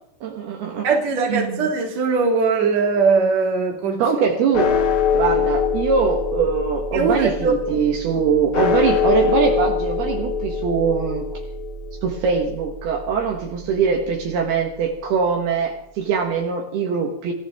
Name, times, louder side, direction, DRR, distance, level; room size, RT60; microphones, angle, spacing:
voice 1, 0.2-0.9 1.3-1.7 4.0-4.8 5.1-11.4 12.0-17.3, right 6 dB, 70° right, 3.2 m, -22 dB
voice 2, 0.8-4.0 6.9-7.6, right 4 dB, 45° right, 3.0 m, -20 dB
sound 1, 4.5-15.0, left 6 dB, 60° left, 3.6 m, -24 dB
26.5 x 15.0 x 3.6 m
omnidirectional pair, 5.0 m